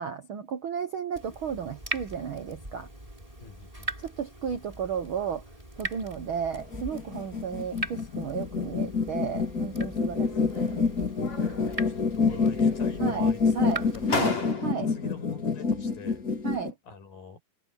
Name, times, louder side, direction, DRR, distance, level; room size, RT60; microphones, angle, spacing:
voice 1, 0.0-2.9 4.0-5.4 5.8-10.9 13.0-14.4 14.6-14.9 16.4-16.7, right 7 dB, 70° right, 1.2 m, -34 dB
Water tap faucet / Drip, 1.1-14.1, right 2 dB, 10° right, 8.0 m, -41 dB
voice 2, 3.4-3.9 11.9-14.4 14.9-16.2 16.8-17.4, left 5 dB, 90° left, 6.8 m, -45 dB
sound 1, 6.6-16.7, left 5 dB, 25° left, 3.0 m, -27 dB
sound 2, 10.2-10.8 11.2-12.0 12.3-13.0 13.7-13.8 14.1-15.0, left 4 dB, 50° left, 7.0 m, -34 dB
omnidirectional pair, 3.9 m